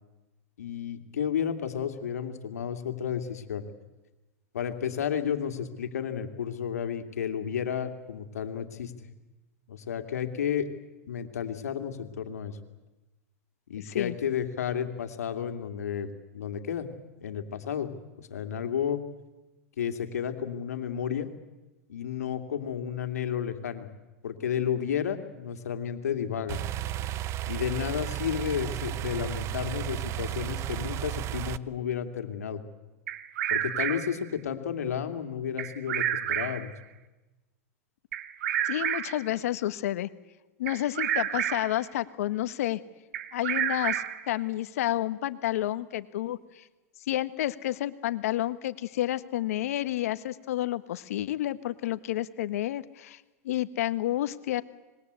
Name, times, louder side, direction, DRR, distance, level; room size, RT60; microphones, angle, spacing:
voice 1, 0.6-3.6 4.5-8.9 9.7-10.7 11.1-12.6 13.7-16.9 17.2-17.9 18.2-19.0 19.8-21.3 21.9-23.9 24.2-26.6 27.5-32.6 33.5-36.7, left 8 dB, 90° left, 7 dB, 2.7 m, -32 dB
voice 2, 13.8-14.1 38.6-40.1 40.6-42.8 43.3-46.7 47.1-54.6, left 14 dB, 75° left, 14 dB, 1.4 m, -30 dB
sound 1, 26.5-31.6, right 13 dB, 35° right, 0.7 m, -33 dB
Bird vocalization bird call bird song, 33.1-34.2 35.6-36.7 38.1-39.3 40.7-41.8 43.1-44.3, right 10 dB, 75° right, 1.7 m, -30 dB
26.0 x 21.5 x 8.3 m, 1.1 s
hypercardioid pair, 130°, 8 cm